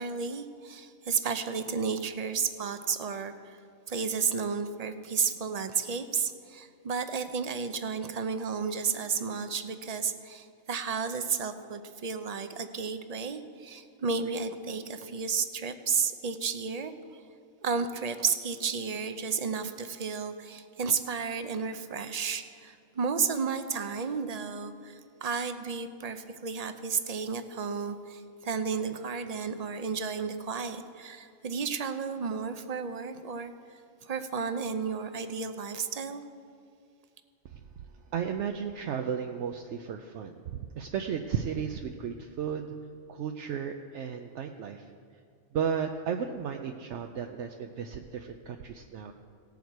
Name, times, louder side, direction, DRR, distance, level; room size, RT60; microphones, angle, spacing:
voice 1, 0.0-3.6 3.9-16.9 17.6-33.5 34.0-36.2, right 5 dB, 45° right, 9 dB, 0.5 m, -32 dB
voice 2, 38.1-42.7 43.1-44.9 45.5-49.1, right 7 dB, 75° right, 5 dB, 0.9 m, -34 dB
18.0 x 7.2 x 4.6 m, 2.3 s
omnidirectional pair, 1.3 m